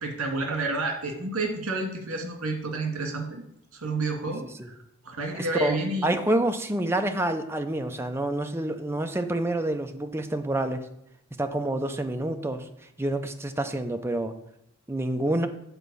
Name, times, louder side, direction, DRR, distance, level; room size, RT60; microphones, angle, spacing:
voice 1, 0.0-3.4 3.7-4.8 5.0-6.1, right 2 dB, 80° right, 2 dB, 2.0 m, -30 dB
voice 2, 5.3-5.8 6.0-10.9 11.4-12.7 13.0-14.3 14.9-15.5, right 1 dB, 10° right, 6 dB, 0.6 m, -27 dB
8.3 x 4.2 x 6.8 m, 0.76 s
head